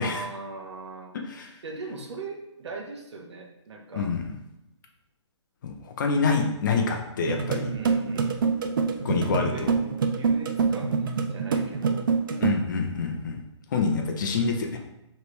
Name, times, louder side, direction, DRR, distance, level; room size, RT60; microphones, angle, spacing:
voice 1, 0.0-1.1 1.6-4.1 6.5-6.6 7.6-8.6 9.4-9.7 10.1-12.0, right 3 dB, 65° right, 1 dB, 1.0 m, -39 dB
voice 2, 5.6-7.7 9.0-9.7 12.4-13.4 13.7-14.8, left 4 dB, 40° left, 3 dB, 0.6 m, -26 dB
sound 1, 7.3-12.5, right 5 dB, 45° right, 0.4 m, -25 dB
5.0 x 3.2 x 3.1 m, 0.90 s
hypercardioid pair, 160°, 16 cm